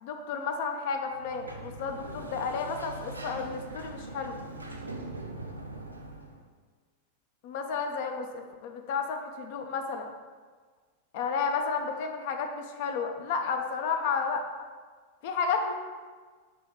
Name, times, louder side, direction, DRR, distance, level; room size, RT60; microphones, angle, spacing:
voice 1, 0.0-4.4 7.4-10.1 11.1-14.5 15.2-15.7, left 5 dB, 50° left, 5 dB, 0.4 m, -32 dB
Sliding door, 1.1-6.4, right 2 dB, 80° right, 0.4 m, -41 dB
5.0 x 3.0 x 3.6 m, 1.5 s
figure-of-eight pair, 90°, 0 cm